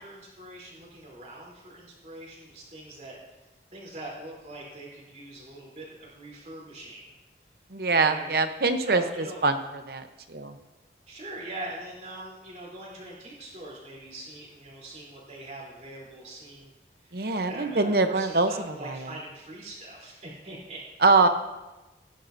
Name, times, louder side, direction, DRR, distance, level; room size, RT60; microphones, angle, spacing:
voice 1, 0.0-3.1 3.7-7.0 8.0-8.3 8.9-9.4 11.1-16.7 17.0-20.8, right 1 dB, 40° right, -4 dB, 3.5 m, -42 dB
voice 2, 7.7-10.6 17.1-19.1 21.0-21.3, right 3 dB, 55° right, 8 dB, 0.8 m, -24 dB
16.5 x 10.5 x 2.7 m, 1.1 s
head